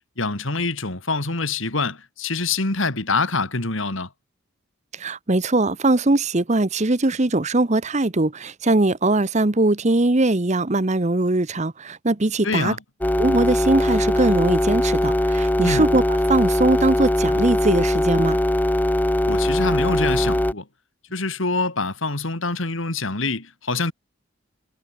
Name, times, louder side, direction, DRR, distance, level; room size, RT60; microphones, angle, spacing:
voice 1, 0.2-4.1 12.4-12.8 15.6-15.9 19.3-20.7 21.1-23.9, left 3 dB, 65° left, 2.7 m, -25 dB
voice 2, 4.9-12.7 13.2-16.0 16.3-18.4, right 2 dB, 35° right, 0.9 m, -21 dB
sound 1, 13.0-20.5, left 1 dB, 10° left, 0.4 m, -21 dB
head